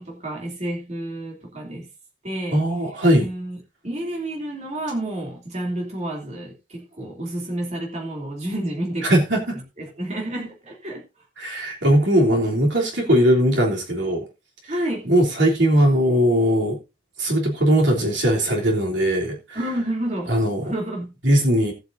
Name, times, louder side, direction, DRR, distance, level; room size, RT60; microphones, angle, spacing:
voice 1, 0.0-1.9 2.2-2.6 3.2-9.1 9.5-11.0 14.7-15.1 19.5-20.4 20.6-21.1, right 1 dB, 35° right, 3.0 m, -30 dB
voice 2, 2.5-3.3 9.0-9.6 11.4-14.2 15.0-16.8 17.2-19.6 20.3-20.6 21.2-21.7, equal, 70° right, 3.3 m, -19 dB
18.5 x 8.0 x 2.7 m
head